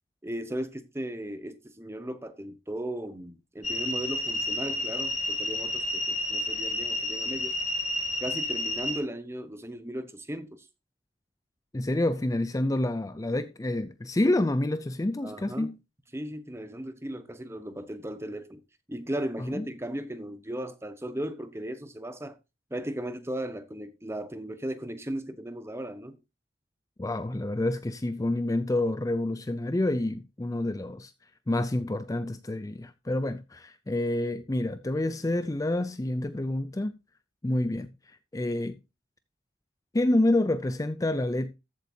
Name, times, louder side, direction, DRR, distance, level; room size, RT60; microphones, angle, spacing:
voice 1, 0.2-7.5 8.2-10.6 15.2-15.7 16.1-18.6 18.9-22.3 22.7-26.2, right 1 dB, 15° right, 1.0 m, -36 dB
sound 1, 3.6-9.0, left 1 dB, 40° left, 2.9 m, -30 dB
voice 2, 11.7-15.8 19.4-19.7 27.0-31.1 31.5-37.0 37.4-37.9 38.3-38.8 39.9-41.5, left 1 dB, 20° left, 0.4 m, -28 dB
14.0 x 7.9 x 2.8 m
head